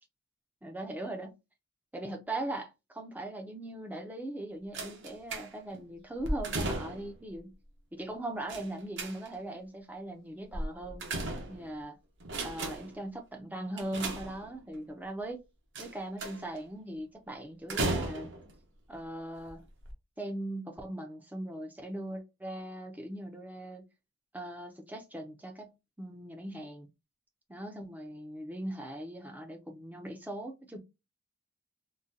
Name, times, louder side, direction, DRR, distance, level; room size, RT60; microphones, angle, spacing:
voice 1, 0.6-1.4 1.9-7.5 7.9-11.0 11.5-12.0 12.4-15.4 15.8-18.3 18.9-19.6 20.2-23.8 24.3-25.7 26.0-26.9 27.5-30.8, right 1 dB, 5° right, 0.4 m, -40 dB
sound 1, 4.7-5.8 6.2-7.2 8.5-9.5 10.5-11.8 12.2-13.0 13.8-14.8 15.8-16.6 17.7-18.5 19.3-19.5 19.8-19.9, right 2 dB, 55° right, 0.8 m, -35 dB
3.8 x 2.2 x 2.6 m
head